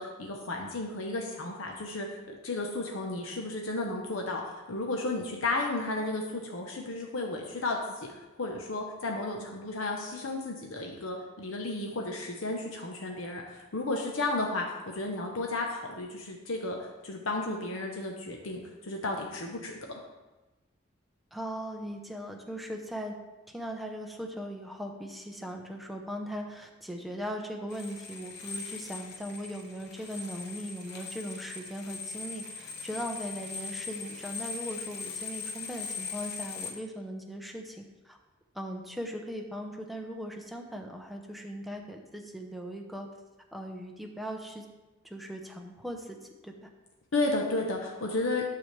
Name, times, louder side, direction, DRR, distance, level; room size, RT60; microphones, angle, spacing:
voice 1, 0.0-8.1 8.4-16.8 17.0-19.7 47.1-48.4, left 2 dB, 85° left, 1 dB, 0.9 m, -33 dB
voice 2, 21.3-23.1 23.5-38.2 38.5-43.1 43.5-44.7 45.0-46.2 46.4-46.7, equal, ahead, 2 dB, 0.7 m, -39 dB
sound 1, 27.7-36.7, left 5 dB, 55° left, 1.0 m, -40 dB
9.2 x 6.9 x 3.2 m, 1.1 s
head